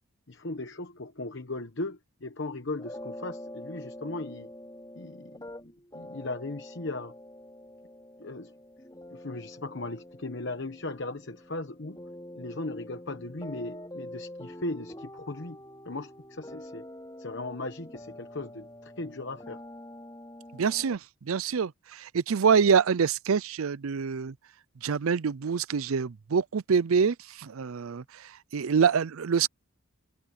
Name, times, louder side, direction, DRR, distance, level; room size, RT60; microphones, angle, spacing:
voice 1, 0.3-4.5 4.9-5.4 5.9-7.1 8.2-8.5 9.1-12.0 12.4-15.6 15.8-16.9 17.2-19.6, left 2 dB, 55° left, 1.1 m, -37 dB
sound 1, 2.8-21.0, left 1 dB, 15° left, 5.6 m, -46 dB
voice 2, 20.5-21.0 21.2-24.3 24.8-29.5, right 6 dB, 75° right, 0.5 m, -26 dB
head